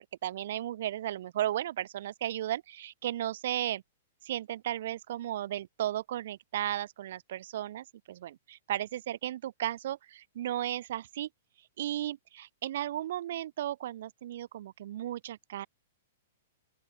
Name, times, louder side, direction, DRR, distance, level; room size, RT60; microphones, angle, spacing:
voice 1, 0.2-3.8 4.2-11.3 11.8-15.7, right 12 dB, 65° right, 0.7 m, -35 dB
open air
hypercardioid pair, 135°, 0 cm